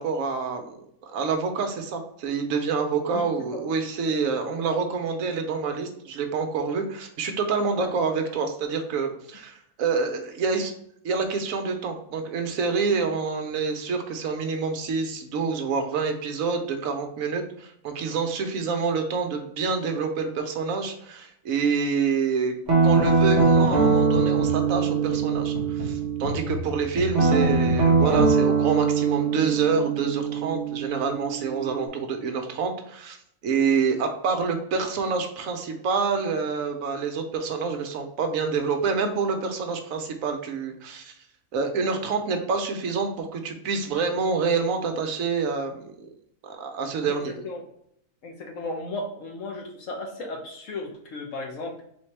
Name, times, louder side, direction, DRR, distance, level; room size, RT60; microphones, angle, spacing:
voice 1, 0.0-10.7 11.0-22.5 22.8-33.2 33.4-41.1 41.5-46.1 46.4-47.3, right 5 dB, 65° right, 5 dB, 1.0 m, -27 dB
Guitar, 22.7-26.5 27.1-31.9, right 4 dB, 35° right, 0.8 m, -22 dB
sound 1, 22.8-29.4, equal, 15° left, 1.1 m, -34 dB
voice 2, 27.2-27.5 47.1-47.6 48.2-51.8, left 2 dB, 60° left, 1 dB, 1.1 m, -35 dB
4.2 x 3.5 x 3.2 m, 0.72 s
omnidirectional pair, 1.6 m